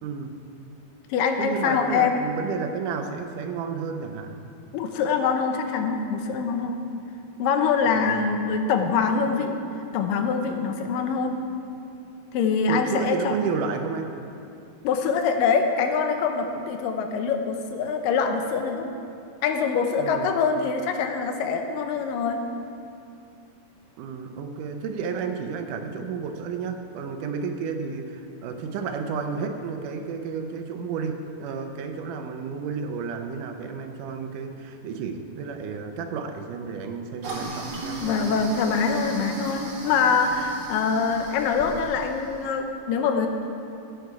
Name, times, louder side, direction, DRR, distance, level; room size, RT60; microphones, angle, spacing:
voice 1, 0.0-0.4 1.4-4.4 7.9-8.3 12.7-14.1 20.0-20.3 24.0-38.0, right 5 dB, 80° right, 6 dB, 2.3 m, -31 dB
voice 2, 1.1-2.3 4.7-6.8 7.4-9.6 9.9-11.4 12.3-13.4 14.8-18.9 19.4-22.4 38.0-43.3, left 5 dB, 90° left, 5 dB, 2.5 m, -24 dB
Toilet flush, 37.2-42.4, right 3 dB, 45° right, 2.1 m, -36 dB
16.0 x 8.0 x 4.7 m, 2.5 s
omnidirectional pair, 3.8 m